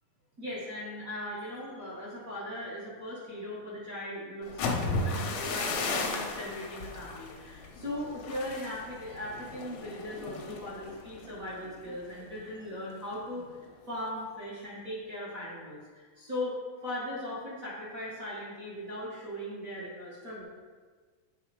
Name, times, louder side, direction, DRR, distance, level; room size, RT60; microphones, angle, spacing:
voice 1, 0.4-16.6 16.8-20.4, left 1 dB, 55° right, -8 dB, 0.9 m, -39 dB
sound 1, 4.4-12.3 12.6-13.0 13.3-13.7, left 3 dB, 75° left, 1.8 m, -35 dB
8.1 x 3.9 x 4.6 m, 1.5 s
omnidirectional pair, 3.9 m